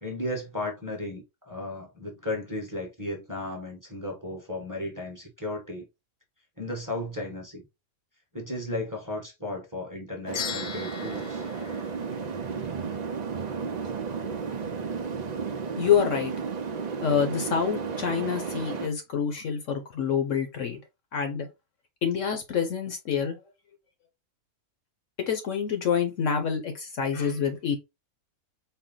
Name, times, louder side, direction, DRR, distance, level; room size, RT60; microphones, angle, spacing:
voice 1, 0.0-5.8 6.6-7.6 8.3-11.4, left 1 dB, 15° right, 1.0 m, -35 dB
sound 1, 10.3-12.8, left 8 dB, 90° left, 1.3 m, -38 dB
sound 2, 10.3-18.9, right 5 dB, 60° right, 0.4 m, -33 dB
voice 2, 15.8-16.3 17.0-20.8 21.1-21.5 22.0-23.4 25.3-27.8, left 7 dB, 60° left, 1.0 m, -27 dB
4.4 x 2.1 x 3.9 m
omnidirectional pair, 1.6 m